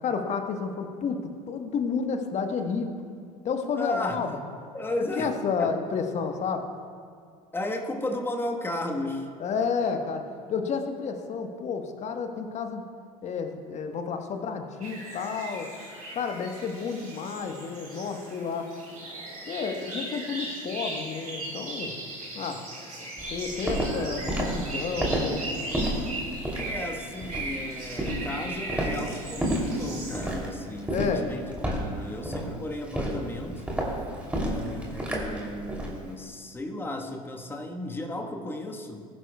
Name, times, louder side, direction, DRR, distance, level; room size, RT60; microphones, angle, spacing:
voice 1, 0.0-2.9 3.4-4.4 5.0-6.7 9.4-12.8 13.2-15.7 16.1-18.7 19.5-21.9 22.3-22.6 23.3-25.4 30.9-31.2, left 5 dB, 35° left, 5 dB, 1.3 m, -31 dB
voice 2, 3.8-4.4 4.7-5.8 7.5-9.3 23.0-23.1 26.6-31.5 31.8-33.6 34.5-39.0, left 1 dB, 10° left, 2 dB, 1.4 m, -34 dB
sound 1, 14.8-30.4, right 2 dB, 85° right, 3.2 m, -38 dB
Walk footsteps, 23.2-36.0, right 1 dB, 5° right, 3.0 m, -31 dB
20.0 x 11.0 x 2.3 m, 2.1 s
figure-of-eight pair, 70°, 19 cm